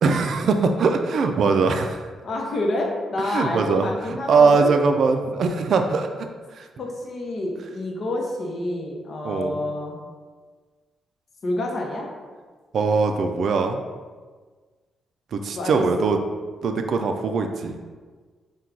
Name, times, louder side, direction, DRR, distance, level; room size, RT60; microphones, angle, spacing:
voice 1, 0.0-2.1 3.3-3.9 4.3-6.7 9.2-9.6 12.7-13.8 15.3-16.2 16.6-17.8, right 4 dB, 60° right, 5 dB, 0.3 m, -21 dB
voice 2, 2.2-4.7 6.8-10.0 11.4-12.1 15.5-16.1, left 1 dB, 50° left, 0 dB, 0.7 m, -28 dB
4.4 x 2.2 x 3.7 m, 1.4 s
cardioid pair, 115°, 0 cm